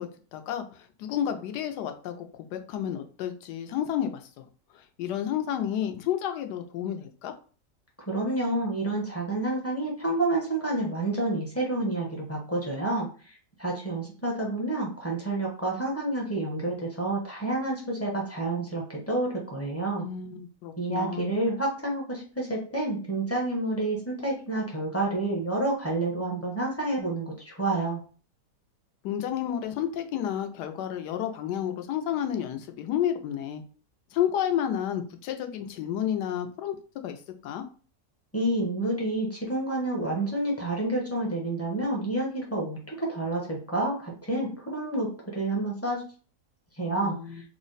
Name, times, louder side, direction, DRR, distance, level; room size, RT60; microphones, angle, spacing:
voice 1, 0.0-2.3 2.5-4.4 4.7-7.3 20.0-21.3 29.0-33.6 34.1-36.8 37.0-37.6 46.9-47.4, left 10 dB, 85° left, 7 dB, 1.2 m, -31 dB
voice 2, 8.1-20.1 20.8-28.0 38.3-45.1 45.3-46.0 46.8-47.1, right 2 dB, 20° left, -3 dB, 0.4 m, -29 dB
3.4 x 2.1 x 3.9 m, 0.39 s
omnidirectional pair, 1.7 m